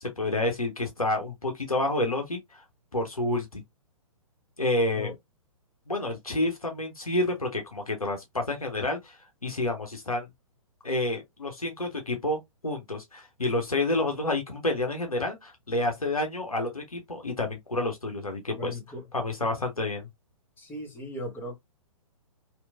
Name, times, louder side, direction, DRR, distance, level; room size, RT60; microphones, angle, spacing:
voice 1, 0.0-2.6 2.9-3.6 4.6-5.1 5.9-9.2 9.4-10.3 10.8-18.8 19.1-20.1, left 2 dB, 85° left, 0.9 m, -29 dB
voice 2, 18.5-19.0 20.6-21.6, left 1 dB, 10° left, 0.9 m, -37 dB
2.9 x 2.6 x 2.4 m
figure-of-eight pair, 120°, 18 cm